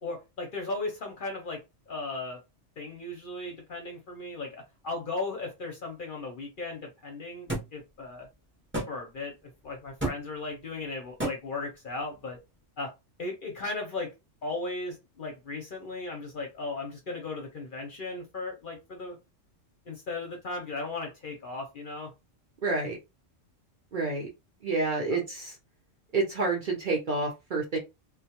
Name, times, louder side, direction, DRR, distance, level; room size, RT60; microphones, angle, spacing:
voice 1, 0.0-2.4 2.8-8.3 8.9-12.4 12.8-12.9 13.2-14.1 14.4-19.2 19.9-22.1 25.1-25.2, left 3 dB, 55° left, 0.7 m, -36 dB
sound 1, 7.5-7.7 8.7-8.9 10.0-10.2 11.2-11.4, right 1 dB, 15° right, 0.6 m, -30 dB
voice 2, 22.6-23.0 23.9-24.3 24.6-25.6 26.1-27.8, right 3 dB, 50° right, 0.6 m, -28 dB
2.2 x 2.1 x 2.8 m
omnidirectional pair, 1.3 m